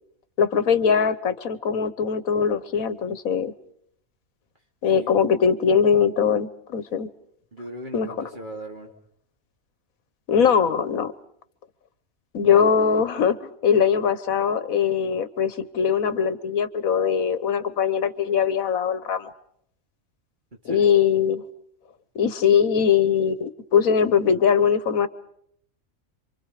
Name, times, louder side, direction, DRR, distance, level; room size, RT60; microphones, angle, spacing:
voice 1, 0.4-3.5 4.8-7.1 7.9-8.1 10.3-11.1 12.3-19.3 20.6-21.4 22.1-25.1, left 7 dB, 80° left, 14 dB, 1.5 m, -21 dB
voice 2, 7.5-8.9 20.5-20.9, right 1 dB, 35° right, 2 dB, 2.9 m, -38 dB
28.5 x 25.0 x 5.0 m, 0.69 s
omnidirectional pair, 1.4 m